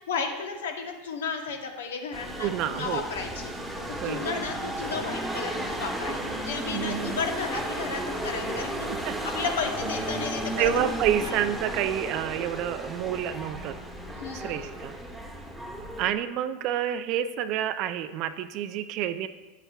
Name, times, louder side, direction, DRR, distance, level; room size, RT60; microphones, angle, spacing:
voice 1, 0.1-3.5 4.0-10.9 11.2-11.4 14.2-14.6, left 5 dB, 80° left, 3 dB, 1.1 m, -33 dB
sound 1, 2.1-16.1, right 1 dB, 5° right, 1.1 m, -34 dB
voice 2, 2.4-3.0 4.0-4.3 6.7-7.3 8.5-8.6 8.9-9.2 10.6-13.8 14.3-15.0 16.0-19.3, right 10 dB, 55° right, 11 dB, 0.5 m, -29 dB
9.5 x 8.0 x 2.4 m, 1.2 s
hypercardioid pair, 95°, 0 cm